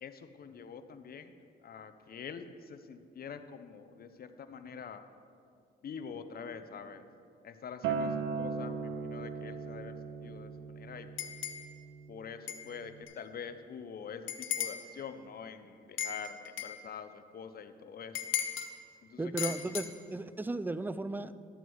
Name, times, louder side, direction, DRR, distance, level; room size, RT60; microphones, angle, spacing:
voice 1, 0.0-1.3 1.6-5.0 5.8-7.1 7.4-10.0 10.2-11.3 12.1-18.2 19.1-19.5, left 6 dB, 50° left, 10 dB, 0.7 m, -45 dB
Acoustic guitar, 7.8-13.0, right 5 dB, 90° right, 0.8 m, -38 dB
sound 1, 11.2-11.7 12.5-12.6 13.1-13.2 14.3-14.8 16.0-16.8 18.2-18.7 19.4-19.9, left 9 dB, 80° left, 1.0 m, -36 dB
voice 2, 19.2-21.4, right 2 dB, 10° right, 14 dB, 0.4 m, -35 dB
12.5 x 8.1 x 4.7 m, 2.4 s
cardioid pair, 90°, 20 cm